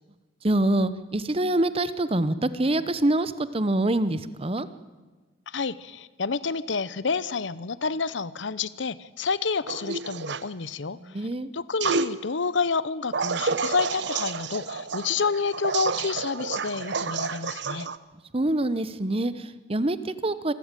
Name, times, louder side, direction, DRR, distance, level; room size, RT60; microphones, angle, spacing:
voice 1, 0.4-4.7 10.9-11.5 18.3-20.5, right 1 dB, 30° right, 14 dB, 0.9 m, -25 dB
voice 2, 5.5-11.3 11.5-17.9, left 4 dB, 65° left, 18 dB, 0.8 m, -29 dB
sound 1, 9.7-10.4 11.8-12.1 13.1-18.0, right 4 dB, 60° right, 0.8 m, -29 dB
26.5 x 13.5 x 9.1 m, 1.3 s
head